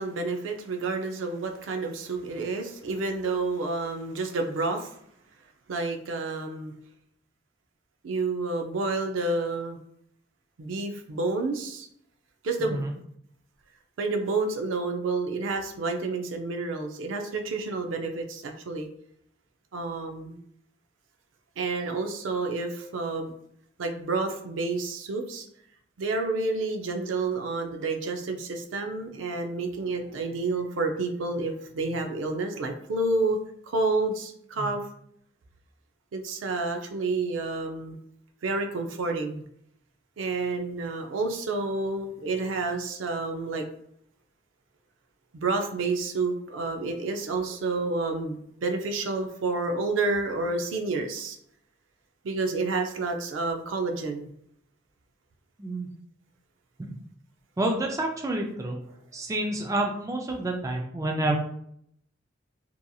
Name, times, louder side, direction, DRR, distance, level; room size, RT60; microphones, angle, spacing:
voice 1, 0.0-4.9 5.7-6.7 8.0-9.8 10.6-11.9 12.4-12.8 14.0-18.9 19.7-20.4 21.6-23.3 23.8-25.4 26.0-33.4 33.7-34.8 36.1-38.0 38.4-39.4 40.2-43.7 45.3-51.4 52.2-54.3, right 3 dB, 85° right, 5 dB, 0.4 m, -29 dB
voice 2, 12.6-12.9 34.6-34.7 55.6-55.9 56.8-57.0 57.6-58.8 59.1-61.4, right 1 dB, 15° right, 1 dB, 0.3 m, -29 dB
2.8 x 2.5 x 2.3 m, 0.70 s
head